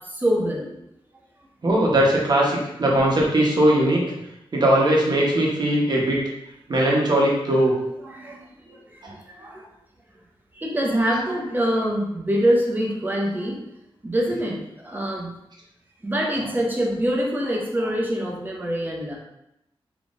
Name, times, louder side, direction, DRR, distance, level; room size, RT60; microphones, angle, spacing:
voice 1, 0.1-0.7 8.0-8.4 8.6-8.8 9.3-9.7 10.5-13.6 14.0-15.3 16.0-19.2, equal, 20° right, -2 dB, 0.7 m, -24 dB
voice 2, 1.6-4.0 4.5-6.2 6.7-7.7 9.0-9.1, right 1 dB, 45° right, -3 dB, 1.0 m, -19 dB
3.6 x 3.0 x 2.5 m, 0.83 s
wide cardioid pair, 100°, 10 cm